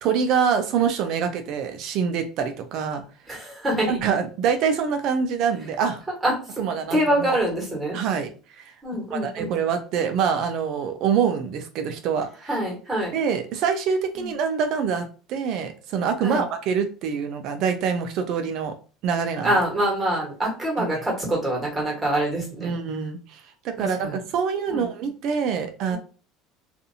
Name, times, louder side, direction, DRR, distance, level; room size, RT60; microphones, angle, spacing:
voice 1, 0.0-3.0 3.7-6.0 6.6-7.3 7.9-8.3 8.6-8.7 9.1-12.6 13.1-18.7 19.0-19.5 20.8-21.0 22.6-26.0, right 6 dB, 60° right, 7 dB, 0.5 m, -25 dB
voice 2, 3.3-4.0 6.2-6.6 6.9-8.0 8.8-9.6 12.5-13.1 14.2-14.3 16.2-16.4 19.4-22.7 23.8-24.1 24.7-24.8 25.9-26.0, right 1 dB, 15° right, -2 dB, 1.4 m, -25 dB
2.5 x 2.5 x 2.7 m, 0.37 s
supercardioid pair, 120°, 0 cm